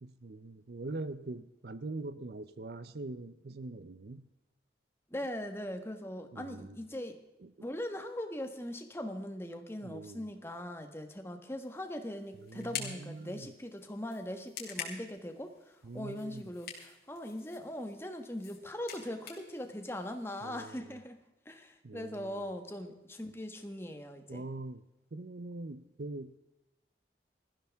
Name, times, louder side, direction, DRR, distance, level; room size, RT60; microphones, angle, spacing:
voice 1, 0.0-4.3 6.3-6.8 7.4-7.7 9.8-10.3 12.4-13.5 15.8-16.4 20.4-21.0 21.8-22.4 24.3-24.8 25.1-26.4, right 2 dB, 60° right, 14 dB, 0.6 m, -43 dB
voice 2, 5.1-7.2 7.6-24.4, left 1 dB, 15° left, 6 dB, 1.4 m, -41 dB
sound 1, 11.6-20.8, left 7 dB, 55° left, 3.3 m, -48 dB
19.5 x 14.5 x 3.6 m, 0.98 s
head